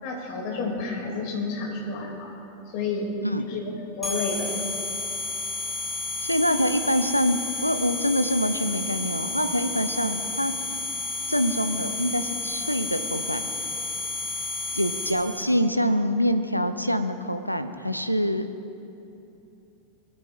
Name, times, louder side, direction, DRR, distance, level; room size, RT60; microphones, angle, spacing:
voice 1, 0.0-2.3 2.7-3.2 3.5-3.7 4.0-4.5, left 3 dB, 45° left, 0 dB, 3.1 m, -30 dB
sound 1, 4.0-15.4, left 3 dB, 5° left, 2.8 m, -31 dB
voice 2, 6.2-10.5 11.3-13.4 14.7-18.5, equal, 90° left, 9 dB, 0.6 m, -25 dB
21.5 x 14.0 x 2.7 m, 2.8 s
figure-of-eight pair, 90°, 0 cm